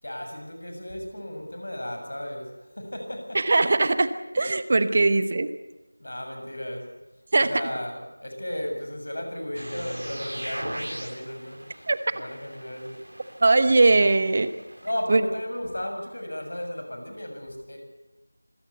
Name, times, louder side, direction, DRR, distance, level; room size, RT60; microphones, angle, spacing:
voice 1, 0.0-3.4 6.0-6.9 7.4-11.9 12.1-13.1 14.8-17.8, left 1 dB, 60° left, 4 dB, 6.8 m, -34 dB
voice 2, 3.3-5.5 7.3-7.5 11.9-12.0 13.4-14.5 15.1-15.2, right 3 dB, 30° right, 12 dB, 1.0 m, -20 dB
sound 1, 9.5-15.0, right 1 dB, 75° right, 3.2 m, -39 dB
25.5 x 16.0 x 8.2 m, 1.1 s
figure-of-eight pair, 170°, 0 cm